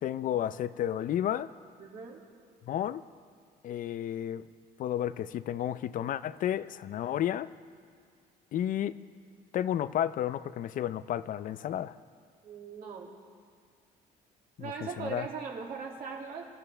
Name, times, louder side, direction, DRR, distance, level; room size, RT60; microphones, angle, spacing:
voice 1, 0.0-1.5 2.7-3.0 3.6-4.5 4.8-7.5 8.5-9.0 9.5-12.0 14.6-15.3, left 11 dB, 55° left, 16 dB, 0.5 m, -32 dB
voice 2, 1.8-2.2 12.4-13.2 14.6-16.4, right 5 dB, 60° right, -1 dB, 2.5 m, -40 dB
25.5 x 13.5 x 3.4 m, 2.2 s
cardioid pair, 110°, 17 cm